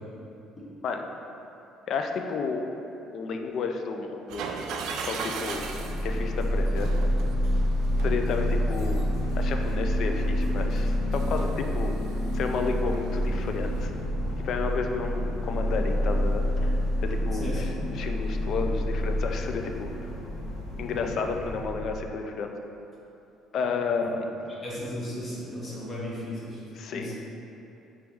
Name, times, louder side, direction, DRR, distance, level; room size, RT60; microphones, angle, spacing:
voice 1, 1.9-2.6 3.1-4.5 5.0-5.7 6.0-6.9 8.0-9.0 9.4-12.0 12.3-13.9 14.4-19.9 20.8-22.5 23.5-24.2 26.8-27.1, left 5 dB, 50° left, 4 dB, 0.3 m, -31 dB
sound 1, 4.3-13.9, right 4 dB, 65° right, 0.3 m, -40 dB
sound 2, 5.5-22.1, equal, 90° left, 0.7 m, -28 dB
voice 2, 17.3-17.6 24.0-24.1 24.6-26.6 26.9-27.2, equal, 20° left, -7 dB, 1.0 m, -35 dB
4.6 x 3.0 x 3.5 m, 2.9 s
cardioid pair, 155°, 0 cm